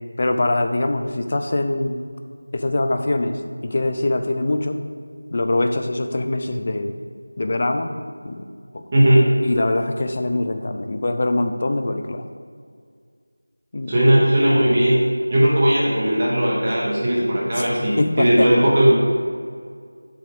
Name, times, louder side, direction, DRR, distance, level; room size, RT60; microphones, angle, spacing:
voice 1, 0.2-2.0 2.5-4.8 5.3-6.9 7.4-8.5 8.7-8.8 9.4-12.3 13.7-13.9 15.3-15.4 17.6-18.5, left 2 dB, 25° left, 7 dB, 0.4 m, -23 dB
voice 2, 8.9-9.3 13.9-15.0 15.3-18.9, right 1 dB, 15° right, -6 dB, 0.9 m, -17 dB
7.7 x 4.9 x 6.8 m, 2.1 s
figure-of-eight pair, 180°, 0 cm